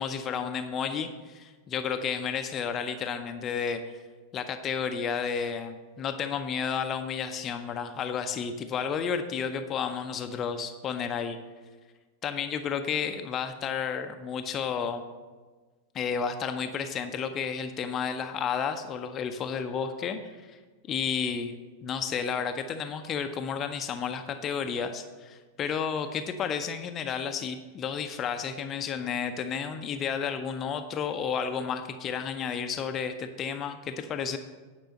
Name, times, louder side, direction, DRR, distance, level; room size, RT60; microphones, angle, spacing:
voice 1, 0.0-3.8 4.3-11.4 12.2-15.1 15.9-20.6 20.9-21.5 21.8-34.4, left 6 dB, 30° left, 7 dB, 0.6 m, -32 dB
10.0 x 5.3 x 6.5 m, 1.4 s
figure-of-eight pair, 90°, 0 cm